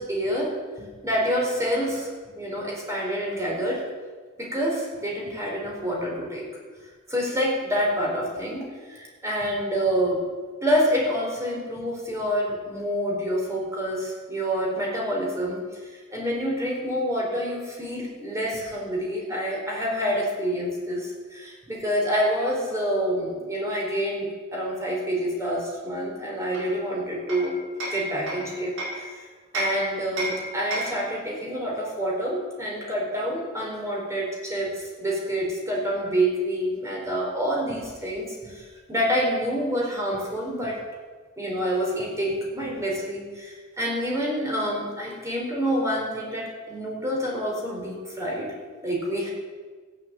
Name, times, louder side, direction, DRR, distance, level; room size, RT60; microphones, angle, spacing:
voice 1, 0.0-2.1 2.4-3.8 4.4-6.5 7.1-10.2 10.6-15.8 16.1-27.6 27.9-29.3 29.5-40.8 41.4-48.5 48.8-49.3, equal, 15° right, -2 dB, 4.2 m, -27 dB
Hammer, 26.5-29.1 29.5-31.1, right 1 dB, 60° right, 5.5 m, -33 dB
14.5 x 10.0 x 7.7 m, 1.4 s
head